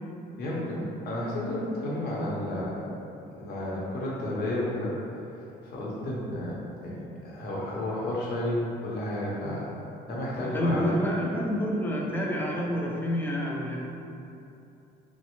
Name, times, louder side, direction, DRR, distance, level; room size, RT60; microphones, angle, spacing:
voice 1, 0.4-2.9 3.3-4.9 5.6-9.8 10.1-11.0, left 1 dB, 65° left, -5 dB, 0.8 m, -32 dB
voice 2, 10.4-13.8, equal, 10° left, -3 dB, 0.4 m, -28 dB
3.1 x 2.0 x 3.0 m, 2.7 s
cardioid pair, 110°, 17 cm